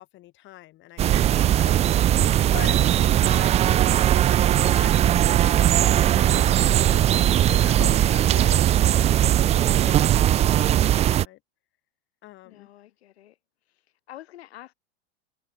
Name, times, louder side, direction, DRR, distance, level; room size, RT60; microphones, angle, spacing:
voice 1, 0.0-1.9 2.5-5.4 6.1-6.5 6.8-8.4 9.1-11.4 12.2-12.7, left 16 dB, 35° left, 4.9 m, -43 dB
sound 1, 1.0-11.2, right 12 dB, 20° right, 0.6 m, -19 dB
voice 2, 8.2-8.8 12.4-13.4 14.1-14.7, left 14 dB, 75° left, 6.0 m, -45 dB
supercardioid pair, 135°, 32 cm